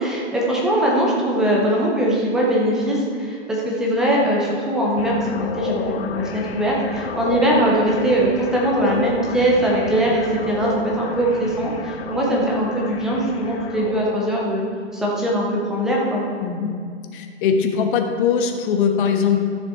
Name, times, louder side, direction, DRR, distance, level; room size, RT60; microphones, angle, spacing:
voice 1, 0.0-14.6 14.9-16.3, right 1 dB, ahead, -4 dB, 0.3 m, -21 dB
sound 1, 5.0-14.2, left 6 dB, 60° left, 1.0 m, -31 dB
voice 2, 16.4-16.7 17.1-19.4, left 6 dB, 45° left, 4 dB, 1.3 m, -20 dB
13.5 x 6.6 x 4.1 m, 2.2 s
hypercardioid pair, 145°, 35 cm